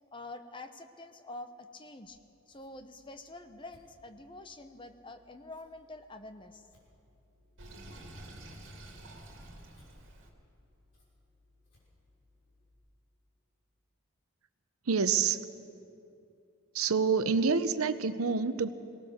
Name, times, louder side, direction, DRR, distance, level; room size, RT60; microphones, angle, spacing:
voice 1, 0.1-2.2 2.5-6.6, left 2 dB, 25° left, 8 dB, 0.8 m, -47 dB
Scissors, 2.0-12.7, left 2 dB, 60° left, 6.2 m, -67 dB
Sink (filling or washing), 7.6-10.3, right 1 dB, 60° right, 2.7 m, -49 dB
voice 2, 14.9-15.4 16.7-18.7, right 5 dB, 85° right, 12 dB, 0.8 m, -27 dB
23.0 x 18.0 x 6.6 m, 2.7 s
head